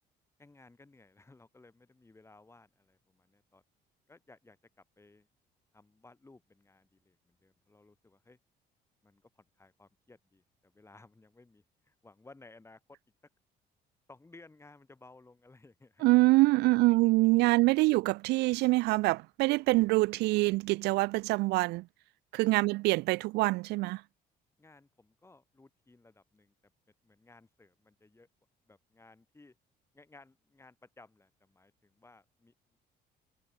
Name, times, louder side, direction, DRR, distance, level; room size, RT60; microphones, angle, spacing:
voice 1, 0.4-3.6 4.1-5.3 5.7-8.4 9.0-13.0 14.1-16.0 16.6-16.9 17.8-17.9 22.6-22.7 24.6-26.7 27.0-28.3 28.7-29.6 29.9-32.5, left 3 dB, 15° left, 7.7 m, -59 dB
voice 2, 16.0-21.8 22.3-24.0, right 21 dB, 85° right, 0.5 m, -25 dB
cardioid pair, 110°, 17 cm